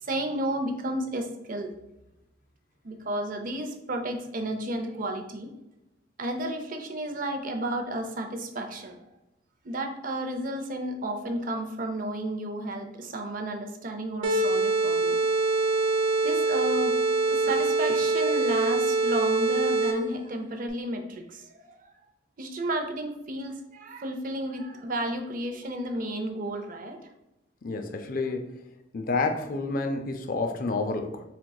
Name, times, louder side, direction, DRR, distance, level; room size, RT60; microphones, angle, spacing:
voice 1, 0.0-1.8 2.8-5.5 6.2-9.0 9.6-15.2 16.2-17.0 17.3-21.8 22.4-27.0, right 1 dB, 45° right, 5 dB, 0.5 m, -32 dB
sound 1, 14.2-20.2, right 3 dB, 90° right, 0.8 m, -24 dB
voice 2, 27.6-28.5 28.9-31.2, left 3 dB, 45° left, 5 dB, 0.4 m, -29 dB
4.5 x 3.6 x 2.3 m, 0.92 s
head